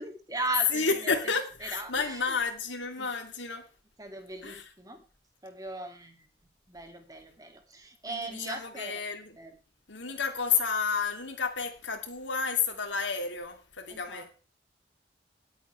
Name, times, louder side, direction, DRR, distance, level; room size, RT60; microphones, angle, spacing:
voice 1, 0.0-1.1 1.6-2.4 3.0-3.1 4.0-5.0 5.4-6.3 6.7-9.0 9.4-9.6 13.9-14.4, right 2 dB, 20° right, 2.6 m, -38 dB
voice 2, 0.7-3.6 4.4-4.6 8.1-9.4 9.9-14.3, left 5 dB, 85° left, 2.9 m, -31 dB
20.5 x 8.5 x 3.4 m
head